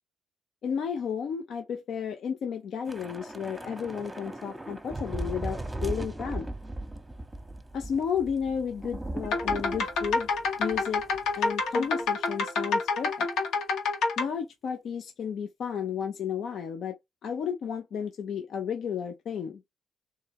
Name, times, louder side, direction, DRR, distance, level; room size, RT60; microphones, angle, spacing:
voice 1, 0.6-6.5 7.7-10.3 10.6-11.0 11.4-13.3 14.2-16.9 17.2-19.6, left 7 dB, 65° left, 0.7 m, -33 dB
Thunder / Rain, 2.9-11.4 11.7-11.9 12.3-12.5, right 1 dB, 10° right, 1.0 m, -38 dB
sound 1, 9.2-14.2, left 3 dB, 80° left, 1.5 m, -28 dB
3.3 x 3.3 x 4.7 m
cardioid pair, 90°, 0 cm